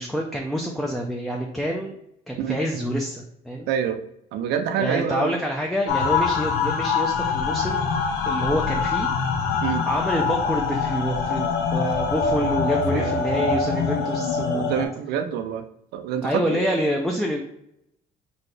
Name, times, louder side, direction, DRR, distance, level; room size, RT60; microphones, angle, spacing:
voice 1, 0.0-2.0 2.3-3.7 4.8-7.9 8.3-9.1 9.9-14.7 16.2-17.4, equal, ahead, 0 dB, 0.5 m, -27 dB
voice 2, 3.7-4.0 4.3-5.3 9.6-9.9 12.4-12.5 12.9-13.1 13.9-14.0 14.5-15.6 15.9-16.7, right 8 dB, 85° right, 9 dB, 0.5 m, -27 dB
sound 1, 5.9-14.9, left 5 dB, 75° left, 0.7 m, -24 dB
4.0 x 2.8 x 3.3 m, 0.76 s
cardioid pair, 110°, 17 cm